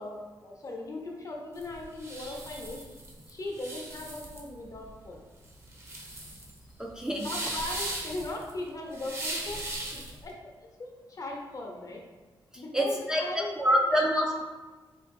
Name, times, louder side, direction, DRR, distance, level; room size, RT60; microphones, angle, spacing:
voice 1, 0.0-2.8 3.3-5.2 7.2-9.6 9.9-12.0 12.6-14.0, left 2 dB, 40° left, 0 dB, 0.8 m, -39 dB
sound 1, 1.5-10.2, right 1 dB, 30° right, 0.8 m, -38 dB
voice 2, 6.8-7.3 12.5-14.4, equal, 10° right, 0 dB, 0.4 m, -27 dB
3.9 x 2.5 x 4.2 m, 1.3 s
cardioid pair, 90°, 9 cm